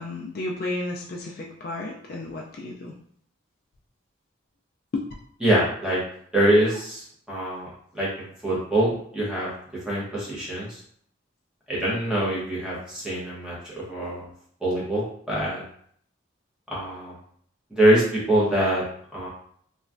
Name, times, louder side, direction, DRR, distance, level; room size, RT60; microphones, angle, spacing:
voice 1, 0.0-2.9 4.9-5.0, left 2 dB, 50° left, -1 dB, 0.3 m, -32 dB
voice 2, 5.4-6.0 6.3-7.7 7.9-9.5 9.9-10.8 11.7-14.3 14.6-15.6 16.7-17.1 17.7-18.8 19.1-19.3, right 1 dB, 5° right, -7 dB, 0.9 m, -24 dB
3.0 x 2.3 x 2.5 m, 0.63 s
head